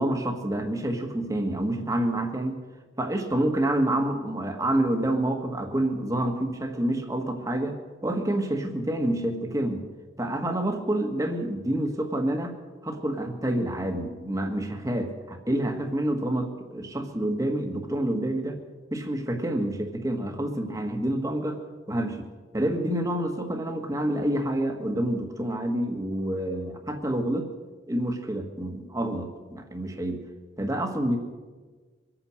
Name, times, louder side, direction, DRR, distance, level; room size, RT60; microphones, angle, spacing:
voice 1, 0.0-2.6 3.0-9.8 10.2-12.6 12.8-18.6 18.9-21.6 21.9-27.5 27.9-30.2 30.6-31.2, right 1 dB, 20° right, 4 dB, 1.6 m, -28 dB
23.5 x 8.9 x 6.5 m, 1.4 s
head